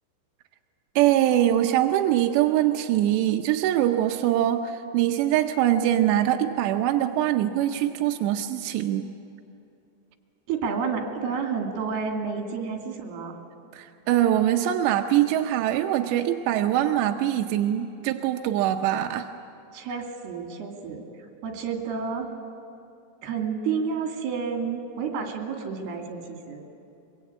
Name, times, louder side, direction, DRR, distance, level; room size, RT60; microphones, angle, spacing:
voice 1, 1.0-9.1 13.7-19.3, right 12 dB, 80° right, 4 dB, 2.6 m, -23 dB
voice 2, 10.5-13.3 19.7-21.1 21.4-22.3 23.2-26.6, right 5 dB, 60° right, 2 dB, 4.1 m, -30 dB
23.5 x 23.0 x 8.4 m, 2.8 s
omnidirectional pair, 5.7 m